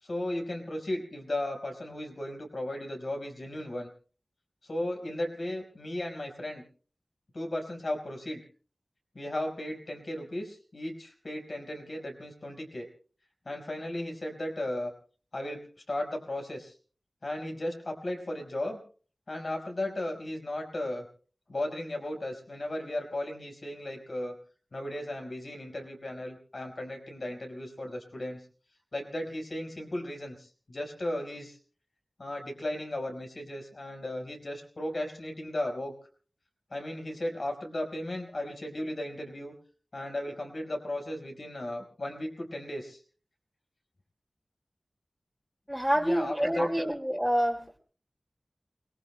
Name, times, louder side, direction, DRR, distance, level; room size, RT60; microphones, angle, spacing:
voice 1, 0.0-3.9 4.6-6.7 7.3-8.4 9.1-12.9 13.4-14.9 15.3-16.7 17.2-18.8 19.3-21.1 21.5-24.4 24.7-28.4 28.9-31.6 32.2-35.9 36.7-39.5 39.9-43.0 46.0-46.9, left 1 dB, 65° left, 3 dB, 4.8 m, -35 dB
voice 2, 45.7-47.8, equal, 5° right, -3 dB, 2.4 m, -27 dB
29.0 x 20.5 x 2.2 m, 0.41 s
wide cardioid pair, 55°, 0 cm